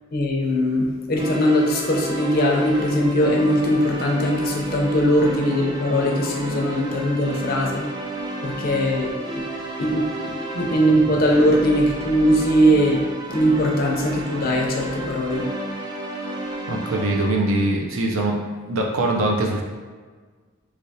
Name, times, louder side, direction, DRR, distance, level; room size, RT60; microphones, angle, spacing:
voice 1, 0.1-7.9 8.4-9.1 9.3-9.4 9.8-13.0 13.3-15.4, equal, 45° left, -1 dB, 0.5 m, -20 dB
sound 1, 1.2-17.3, right 1 dB, 20° right, 0.3 m, -32 dB
voice 2, 16.7-18.4 18.7-19.6, right 2 dB, 75° right, 1 dB, 0.5 m, -22 dB
3.3 x 2.8 x 2.7 m, 1.5 s
head